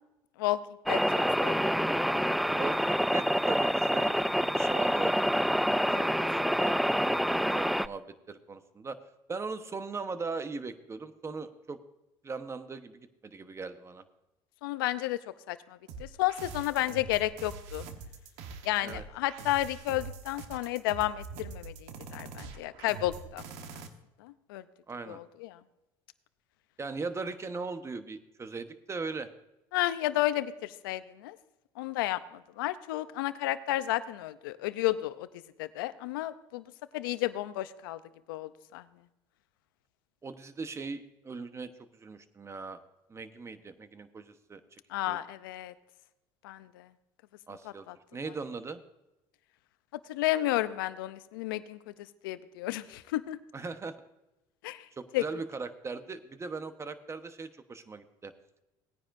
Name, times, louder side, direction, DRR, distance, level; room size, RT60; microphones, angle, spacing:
sound 1, 0.9-7.9, equal, ahead, 0.3 m, -27 dB
voice 1, 2.5-4.2 4.6-5.4 6.0-6.8 7.0-9.0 9.3-11.8 12.2-14.0 18.8-19.0 24.9-25.2 26.8-29.3 40.2-42.8 43.1-44.8 45.1-45.2 47.5-47.9 48.1-48.8 53.5-53.9 55.0-58.3, right 4 dB, 25° right, 10 dB, 1.1 m, -39 dB
voice 2, 14.6-15.2 15.5-17.8 18.6-23.4 23.7-23.8 24.2-24.6 25.1-25.6 29.7-31.4 31.8-35.3 35.6-36.6 36.9-38.0 38.3-38.8 44.9-45.7 46.4-46.9 47.6-48.0 50.1-51.8 52.2-53.4 54.6-54.9 55.1-55.2, left 15 dB, 85° left, 14 dB, 0.6 m, -32 dB
sound 2, 15.9-23.9, right 5 dB, 70° right, 1.3 m, -44 dB
18.5 x 9.8 x 2.6 m, 0.96 s
supercardioid pair, 80°, 11 cm